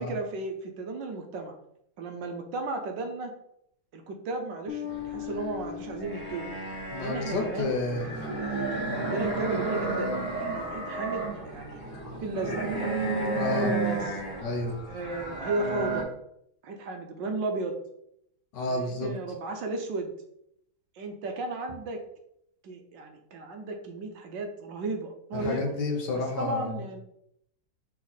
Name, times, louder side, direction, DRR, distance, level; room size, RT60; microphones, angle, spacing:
voice 1, 0.0-1.6 2.0-3.3 3.9-6.5 7.0-7.7 8.0-10.1 10.4-11.8 12.2-12.9 13.5-14.2 14.9-16.1 16.6-17.8 18.7-20.1 21.0-22.0 22.6-25.7 26.1-27.0, right 3 dB, 65° right, 4 dB, 1.4 m, -34 dB
Bass guitar, 4.7-7.7, left 13 dB, 90° left, 1.7 m, -40 dB
sound 1, 4.9-16.0, right 2 dB, 15° right, 2.8 m, -32 dB
voice 2, 6.9-8.3 13.3-13.7 14.4-14.8 18.5-19.1 25.3-26.8, left 3 dB, 60° left, 2 dB, 1.6 m, -30 dB
6.0 x 4.4 x 4.1 m, 0.75 s
omnidirectional pair, 2.2 m